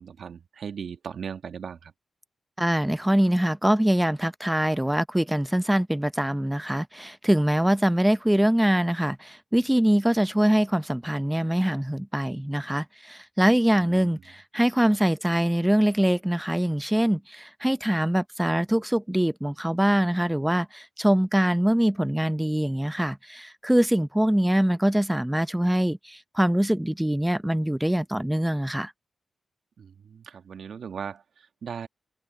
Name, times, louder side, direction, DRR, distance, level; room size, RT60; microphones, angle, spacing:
voice 1, 0.0-1.9 13.7-14.2 14.9-15.0 29.8-31.9, right 7 dB, 70° right, 1.6 m, -38 dB
voice 2, 2.6-28.9, right 1 dB, 10° right, 0.7 m, -23 dB
supercardioid pair, 45°, 0 cm